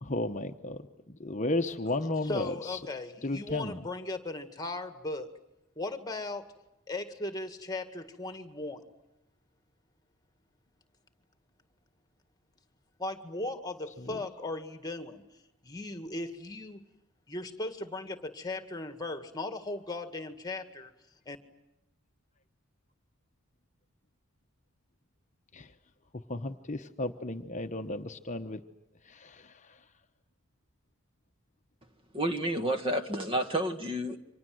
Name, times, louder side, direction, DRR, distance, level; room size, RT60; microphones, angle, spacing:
voice 1, 0.0-2.8 3.2-3.8 14.0-14.2 25.5-25.7 26.3-28.6 29.0-29.8, left 2 dB, 35° left, 6 dB, 1.0 m, -34 dB
voice 2, 2.2-5.3 5.8-6.5 6.9-8.8 13.0-15.2 15.6-16.8 17.3-20.9 21.3-21.4, left 2 dB, 15° left, 8 dB, 2.0 m, -37 dB
voice 3, 32.1-34.2, right 1 dB, 25° right, 7 dB, 1.7 m, -30 dB
30.0 x 25.5 x 7.8 m, 0.92 s
head